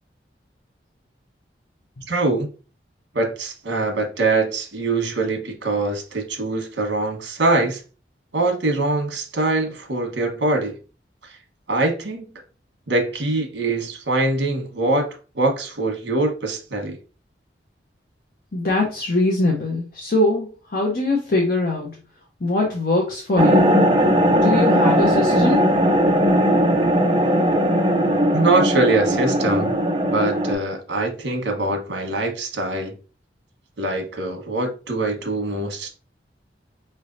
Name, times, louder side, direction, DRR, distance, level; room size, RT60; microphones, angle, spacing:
voice 1, 2.1-2.5 3.1-7.8 8.3-10.8 11.3-11.4 11.7-12.3 12.9-15.1 15.3-17.0 28.3-29.7 30.1-32.9 33.8-35.9, right 2 dB, 75° right, 1.2 m, -23 dB
voice 2, 18.5-22.0 22.4-23.8 24.3-25.6, left 2 dB, 55° left, 0.8 m, -22 dB
sound 1, 23.4-30.5, equal, 25° right, 0.6 m, -18 dB
5.3 x 3.2 x 2.6 m
head